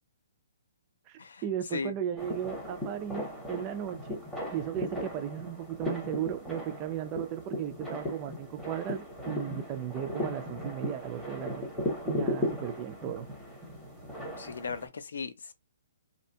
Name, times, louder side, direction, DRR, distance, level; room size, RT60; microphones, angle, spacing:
voice 1, 1.1-4.2 4.5-11.6 12.0-13.3, right 10 dB, 20° right, 0.3 m, -36 dB
sound 1, 2.2-14.9, left 1 dB, 5° left, 0.7 m, -37 dB
voice 2, 14.4-15.5, left 5 dB, 80° left, 0.5 m, -37 dB
2.6 x 2.2 x 2.7 m
hypercardioid pair, 170°, 0 cm